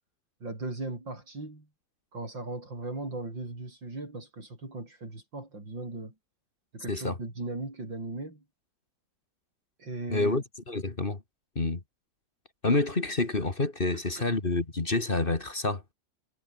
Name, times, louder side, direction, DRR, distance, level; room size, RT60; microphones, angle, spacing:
voice 1, 0.4-1.7 2.1-6.1 6.7-8.4 9.8-10.4 14.2-14.4, right 2 dB, 75° right, 7.4 m, -38 dB
voice 2, 10.1-11.2 11.6-11.8 12.6-15.8, left 2 dB, 30° left, 2.3 m, -28 dB
omnidirectional pair, 2.1 m